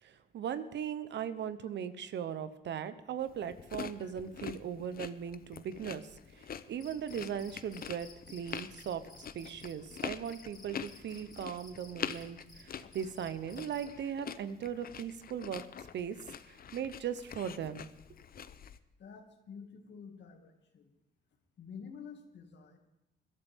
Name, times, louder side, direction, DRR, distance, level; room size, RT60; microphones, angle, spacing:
voice 1, 0.0-15.6 15.9-16.2 16.5-17.9, right 8 dB, 65° right, 12 dB, 1.0 m, -39 dB
sound 1, 3.2-18.8, left 8 dB, 50° left, 0.7 m, -45 dB
Cricket, 6.8-14.0, left 2 dB, 20° left, 3.1 m, -56 dB
voice 2, 19.0-21.0 21.6-22.8, left 6 dB, 65° left, 4 dB, 2.3 m, -49 dB
21.5 x 13.0 x 3.6 m, 0.90 s
cardioid pair, 90°, 20 cm